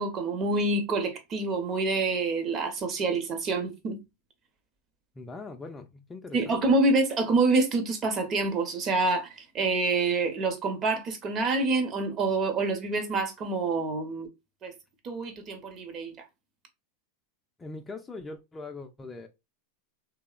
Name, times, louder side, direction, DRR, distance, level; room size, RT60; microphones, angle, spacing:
voice 1, 0.0-4.0 6.3-14.3 14.6-14.8 15.0-16.1, right 3 dB, 40° right, 0.7 m, -27 dB
voice 2, 5.2-6.6 17.6-19.3, left 3 dB, 15° left, 0.4 m, -41 dB
2.7 x 2.0 x 2.3 m
hypercardioid pair, 105°, 0 cm